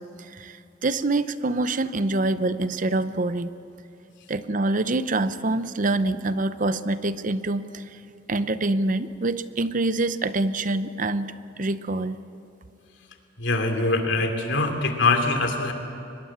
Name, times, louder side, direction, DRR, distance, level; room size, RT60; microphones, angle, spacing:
voice 1, 0.0-3.5 4.3-8.0 8.3-11.3 11.6-12.2, right 2 dB, 45° right, 13 dB, 0.7 m, -25 dB
voice 2, 13.4-15.7, left 3 dB, 90° left, 5 dB, 2.9 m, -23 dB
23.5 x 21.0 x 8.7 m, 2.7 s
head